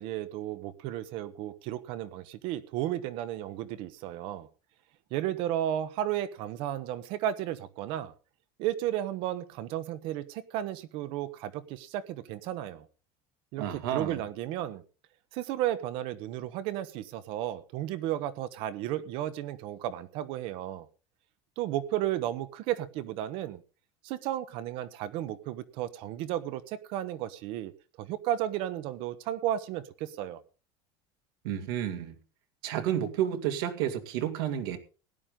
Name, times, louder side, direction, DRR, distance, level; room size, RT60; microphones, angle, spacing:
voice 1, 0.0-4.5 5.1-8.1 8.6-12.8 13.5-14.8 15.3-20.9 21.6-23.6 24.0-27.7 28.0-30.4, right 12 dB, 45° right, 1.0 m, -33 dB
voice 2, 13.6-14.2 31.4-32.2 32.6-34.8, right 10 dB, 75° right, 2.4 m, -31 dB
17.5 x 11.0 x 3.7 m
cardioid pair, 180°, 12 cm